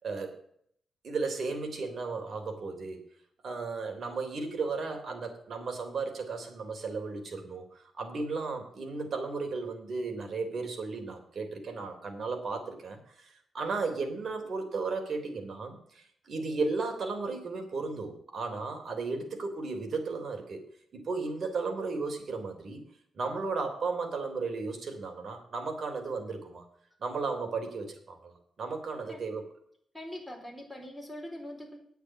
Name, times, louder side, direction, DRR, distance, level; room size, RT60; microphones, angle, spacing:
voice 1, 0.0-0.4 1.0-3.0 3.4-20.6 20.9-22.8 23.1-26.6 27.0-28.3 28.6-29.5, right 4 dB, 55° right, 4 dB, 3.2 m, -35 dB
voice 2, 29.9-31.8, left 1 dB, ahead, 0 dB, 4.4 m, -42 dB
9.6 x 8.2 x 7.3 m, 0.66 s
cardioid pair, 100°, 0 cm